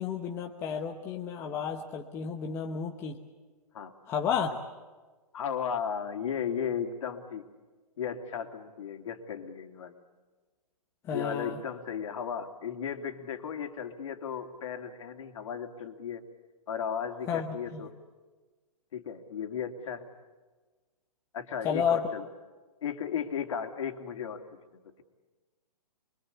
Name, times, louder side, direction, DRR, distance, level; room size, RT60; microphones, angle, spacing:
voice 1, 0.0-3.2 4.1-4.5 11.0-11.6 17.3-17.8 21.6-22.1, left 7 dB, 10° left, 2 dB, 1.0 m, -31 dB
voice 2, 5.3-7.5 8.0-9.9 11.1-16.2 16.7-17.9 18.9-20.1 21.3-22.3 22.8-24.4, left 7 dB, 50° left, 5 dB, 2.9 m, -35 dB
25.5 x 23.5 x 8.4 m, 1.3 s
hypercardioid pair, 170°, 21 cm